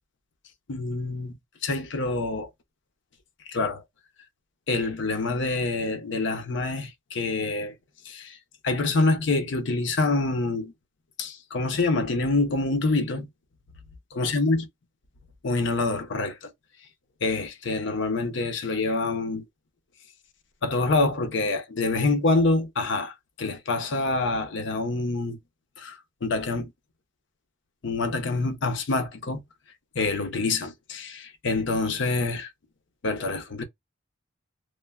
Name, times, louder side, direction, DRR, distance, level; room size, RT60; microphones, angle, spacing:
voice 1, 0.7-1.4 1.6-2.5 3.5-3.8 4.7-7.7 8.1-8.4 8.6-10.7 11.2-13.3 14.1-14.6 15.4-16.5 17.2-19.4 20.6-25.4 25.8-25.9 26.2-26.7 27.8-29.4 30.0-32.5 33.0-33.6, left 3 dB, 60° left, 0.6 m, -26 dB
3.1 x 2.1 x 2.3 m
head